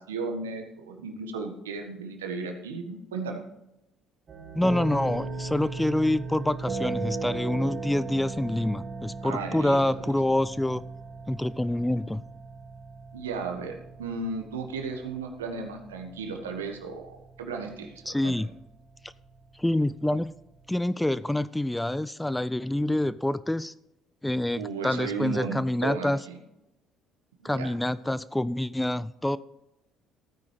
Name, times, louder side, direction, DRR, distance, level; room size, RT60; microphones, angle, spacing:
voice 1, 0.0-3.4 9.2-9.8 13.1-18.5 24.5-26.4 27.4-27.7, right 4 dB, 85° right, 4 dB, 1.4 m, -35 dB
sound 1, 4.3-20.8, right 3 dB, 40° right, 2.3 m, -38 dB
voice 2, 4.6-10.8 11.3-12.2 18.1-18.5 19.6-20.3 20.7-23.7 24.2-26.2 27.4-29.4, left 1 dB, 10° left, 17 dB, 0.4 m, -26 dB
15.5 x 9.4 x 3.3 m, 0.93 s
hypercardioid pair, 55°, 0 cm